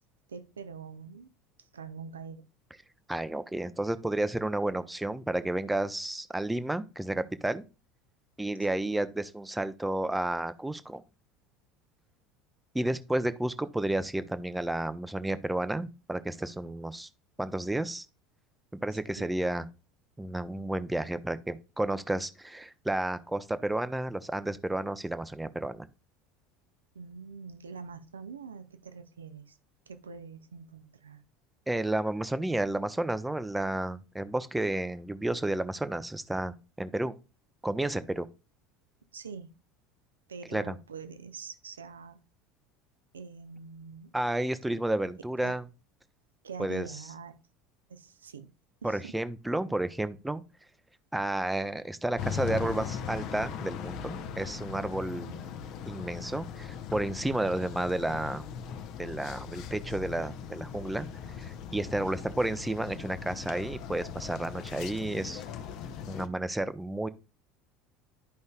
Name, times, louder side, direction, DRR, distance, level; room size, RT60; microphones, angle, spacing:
voice 1, 0.3-1.3 1.6-2.5 8.8-8.9 18.9-19.3 26.9-29.6 29.9-31.2 39.1-39.5 40.3-42.2 43.1-44.1 45.4-45.6 46.4-47.4 47.9-48.5 48.8-49.1 55.1-55.6, right 5 dB, 80° right, 0.7 m, -44 dB
voice 2, 3.1-7.6 8.4-11.0 12.7-17.1 17.4-18.1 18.7-19.7 20.2-25.9 31.7-37.1 37.6-38.3 40.5-40.7 44.1-45.6 46.6-46.9 48.8-50.4 51.1-55.3 55.8-58.4 59.0-61.1 61.3-65.4 66.1-67.1, right 1 dB, 5° right, 0.7 m, -31 dB
sound 1, 52.2-66.3, left 7 dB, 50° left, 0.8 m, -39 dB
11.5 x 5.3 x 2.3 m
figure-of-eight pair, 70°, 0 cm